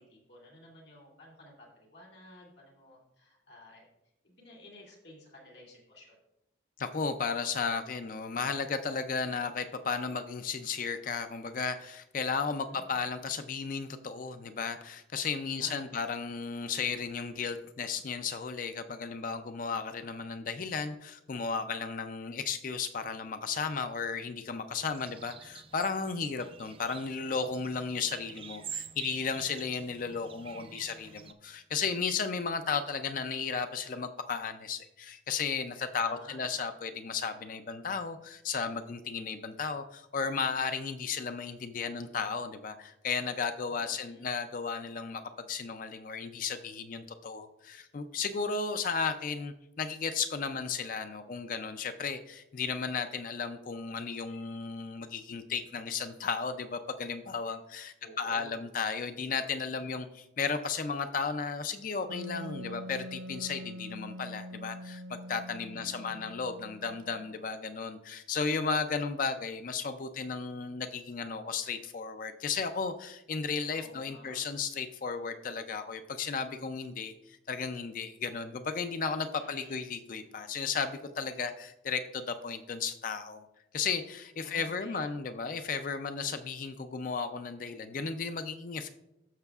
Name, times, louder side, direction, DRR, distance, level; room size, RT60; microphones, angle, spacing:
voice 1, 0.0-3.9 4.2-6.2 12.6-13.0 15.6-16.0 29.9-31.2 36.0-36.4 43.7-44.3 58.0-58.6 65.7-66.3 73.7-74.4 79.4-79.8 84.4-85.2, left 1 dB, 65° left, -3 dB, 2.3 m, -53 dB
voice 2, 6.8-83.5 83.7-88.9, left 5 dB, 45° left, 9 dB, 0.4 m, -34 dB
sound 1, 24.8-31.3, right 7 dB, 30° right, 0.3 m, -47 dB
Wind instrument woodwind instrument, 62.1-67.5, equal, 85° right, 0.6 m, -44 dB
12.0 x 6.9 x 2.4 m, 0.87 s
head